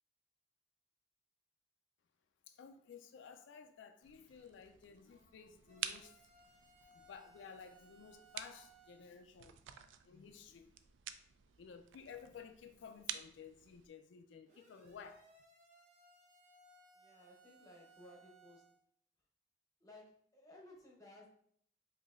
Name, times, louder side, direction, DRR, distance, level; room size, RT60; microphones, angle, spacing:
voice 1, 2.5-6.2 6.9-10.7 11.6-15.3, left 6 dB, 85° left, 8 dB, 0.3 m, -55 dB
sound 1, 4.0-13.9, right 10 dB, 90° right, 0.3 m, -50 dB
sound 2, 5.7-9.1 14.5-18.8, right 3 dB, 40° right, 0.9 m, -65 dB
voice 2, 16.9-18.7 19.8-21.3, left 1 dB, 20° left, -1 dB, 0.7 m, -59 dB
4.9 x 2.7 x 2.4 m, 0.64 s
head